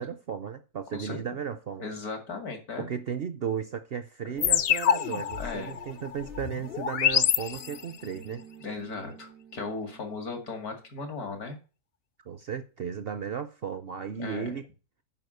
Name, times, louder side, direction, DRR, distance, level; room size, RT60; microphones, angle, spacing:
voice 1, 0.0-1.8 2.8-8.4 12.3-14.6, right 7 dB, 55° right, 0.7 m, -35 dB
voice 2, 1.8-2.9 5.3-5.8 8.6-11.6 14.2-14.5, left 4 dB, 80° left, 2.7 m, -37 dB
sound 1, 4.3-10.9, right 3 dB, 90° right, 2.1 m, -51 dB
sound 2, 4.4-8.1, left 9 dB, 60° left, 0.6 m, -27 dB
9.8 x 5.0 x 6.6 m
omnidirectional pair, 1.6 m